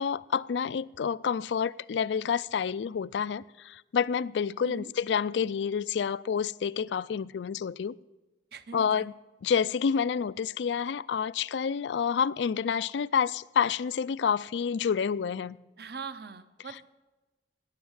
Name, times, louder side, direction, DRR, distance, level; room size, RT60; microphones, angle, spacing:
voice 1, 0.0-7.9 8.7-9.1 9.4-15.6, left 7 dB, 80° left, 0.4 m, -29 dB
voice 2, 8.5-9.1 15.8-16.9, right 5 dB, 60° right, 0.8 m, -42 dB
18.5 x 7.2 x 7.3 m
head